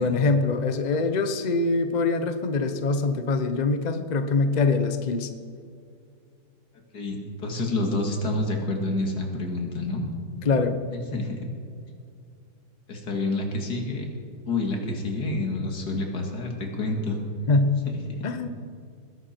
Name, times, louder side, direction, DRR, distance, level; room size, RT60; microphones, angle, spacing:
voice 1, 0.0-5.3 10.4-10.8 17.5-17.7 18.2-18.5, left 3 dB, 40° left, 8 dB, 0.6 m, -23 dB
voice 2, 6.9-10.1 11.1-11.5 12.9-14.1 14.5-17.2 18.1-18.2, left 2 dB, 70° left, 2 dB, 2.5 m, -28 dB
20.0 x 11.5 x 4.4 m, 2.3 s
omnidirectional pair, 1.8 m